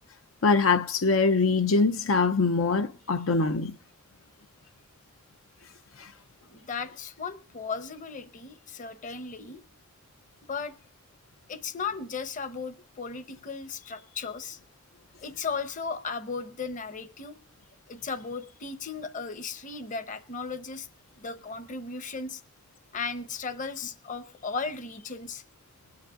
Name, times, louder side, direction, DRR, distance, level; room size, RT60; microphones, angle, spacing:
voice 1, 0.4-3.7 6.0-6.1, left 4 dB, 85° left, 0.7 m, -23 dB
voice 2, 6.5-9.6 10.4-10.7 11.5-14.6 15.2-17.4 17.9-20.9 21.2-22.4 22.9-25.4, left 5 dB, 40° left, 0.9 m, -36 dB
21.0 x 9.7 x 2.4 m
head